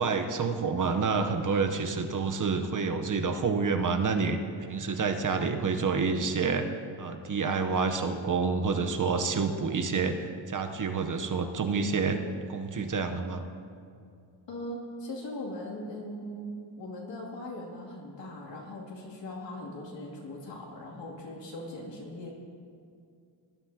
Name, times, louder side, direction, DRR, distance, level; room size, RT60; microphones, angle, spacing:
voice 1, 0.0-4.4 4.7-6.7 7.0-12.2 12.5-13.4, right 4 dB, 45° right, 6 dB, 0.9 m, -28 dB
voice 2, 14.5-22.3, left 1 dB, 70° left, -2 dB, 2.6 m, -40 dB
19.5 x 11.5 x 2.8 m, 2.3 s
cardioid pair, 105°, 45 cm